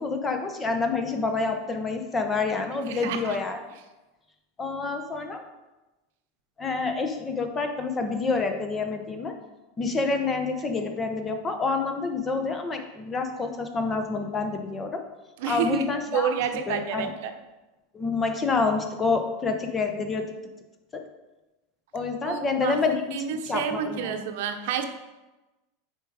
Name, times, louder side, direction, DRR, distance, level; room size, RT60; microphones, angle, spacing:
voice 1, 0.0-3.6 4.6-5.4 6.6-9.3 9.8-15.0 15.4-16.3 16.7-17.1 17.9-20.2 21.9-23.0 23.3-24.2, left 4 dB, 20° left, 5 dB, 0.8 m, -28 dB
voice 2, 2.9-3.4 15.4-17.3 22.2-22.8 23.1-24.8, right 8 dB, 70° right, 6 dB, 0.7 m, -29 dB
6.8 x 4.6 x 4.8 m, 1.1 s
supercardioid pair, 135°, 0 cm